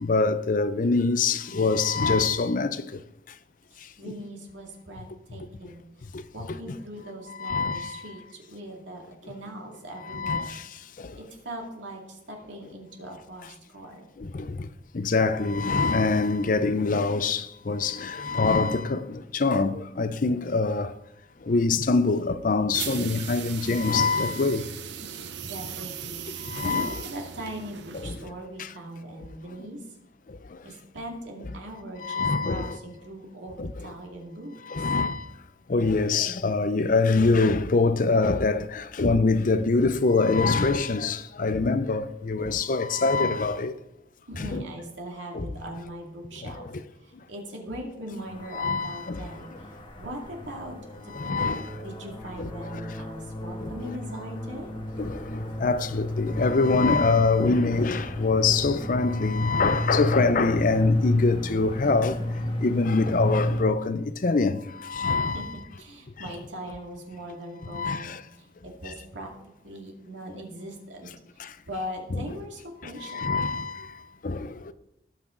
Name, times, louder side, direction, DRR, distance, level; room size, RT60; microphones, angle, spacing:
voice 1, 0.0-2.7 7.4-7.9 10.1-10.5 15.0-17.4 17.7-19.0 19.4-20.9 21.5-24.6 26.6-27.0 32.0-32.7 33.6-33.7 34.7-35.2 35.7-43.7 44.4-44.6 45.4-45.5 48.5-49.2 51.2-51.6 52.4-52.5 55.0-55.1 55.6-62.1 62.6-64.6 64.9-65.5 67.7-68.0 72.1-72.2 73.1-73.7 74.2-74.4, left 3 dB, 45° left, 0.5 m, -24 dB
voice 2, 3.7-6.1 6.3-10.5 11.2-14.0 25.4-30.0 30.6-34.9 44.3-46.7 47.0-49.7 50.0-51.4 51.7-54.7 65.2-69.3 69.6-71.1 71.7-73.3, equal, 90° right, 2.4 m, -40 dB
sound 1, 22.7-28.4, right 8 dB, 70° right, 0.6 m, -38 dB
sound 2, 48.3-63.6, left 1 dB, 30° left, 1.4 m, -32 dB
18.0 x 5.9 x 3.8 m
head